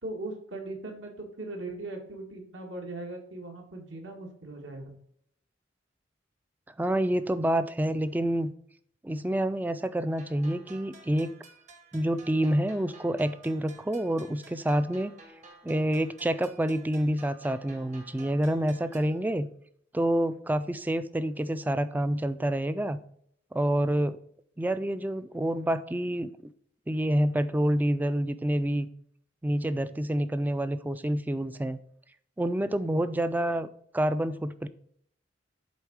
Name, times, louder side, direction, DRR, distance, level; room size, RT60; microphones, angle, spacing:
voice 1, 0.0-4.9, right 2 dB, 75° right, 2 dB, 1.7 m, -39 dB
voice 2, 6.8-8.5 9.0-11.3 11.9-15.1 15.6-19.5 19.9-23.0 23.5-24.2 24.6-26.3 26.9-28.9 29.4-31.8 32.4-33.7 33.9-34.7, right 1 dB, 10° right, 13 dB, 0.3 m, -28 dB
sound 1, 10.2-19.2, right 3 dB, 40° right, 1.0 m, -53 dB
8.2 x 3.7 x 4.7 m, 0.66 s
head